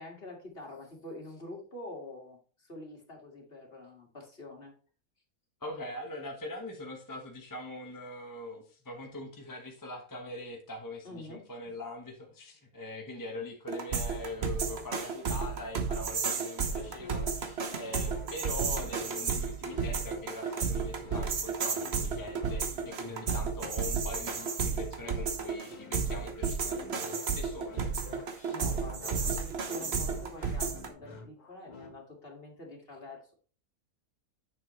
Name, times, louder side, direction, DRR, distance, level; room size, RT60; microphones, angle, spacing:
voice 1, 0.0-4.7 11.0-11.5 28.2-33.3, left 2 dB, 40° left, 1 dB, 2.2 m, -46 dB
voice 2, 5.6-28.0, left 1 dB, 15° left, 1 dB, 1.1 m, -42 dB
sound 1, 13.7-30.9, right 5 dB, 50° right, 1.2 m, -32 dB
sound 2, 16.0-31.9, left 4 dB, 90° left, 2.0 m, -50 dB
9.3 x 6.7 x 3.1 m, 0.41 s
omnidirectional pair, 1.5 m